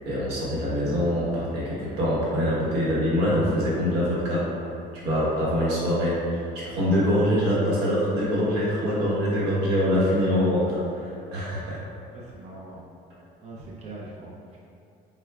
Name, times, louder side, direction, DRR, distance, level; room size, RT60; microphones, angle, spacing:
voice 1, 0.0-4.4 4.9-11.8, equal, 80° right, -7 dB, 1.0 m, -24 dB
voice 2, 12.1-12.8 13.4-14.3, right 2 dB, 40° right, -5 dB, 0.5 m, -41 dB
4.6 x 2.2 x 2.3 m, 2.5 s
cardioid pair, 110°, 17 cm